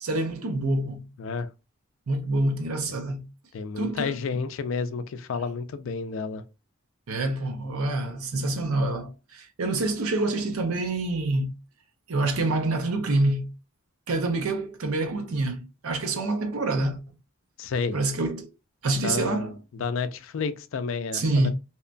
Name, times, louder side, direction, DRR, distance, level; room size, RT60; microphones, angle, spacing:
voice 1, 0.0-1.1 2.1-3.3 3.8-4.1 7.1-11.6 12.1-13.5 14.1-17.0 17.9-18.5 18.8-19.6 21.1-21.5, right 2 dB, 75° right, 0.6 m, -26 dB
voice 2, 1.2-1.5 3.5-6.4 17.6-18.0 19.0-21.5, left 5 dB, 60° left, 0.3 m, -31 dB
2.8 x 2.1 x 2.4 m
head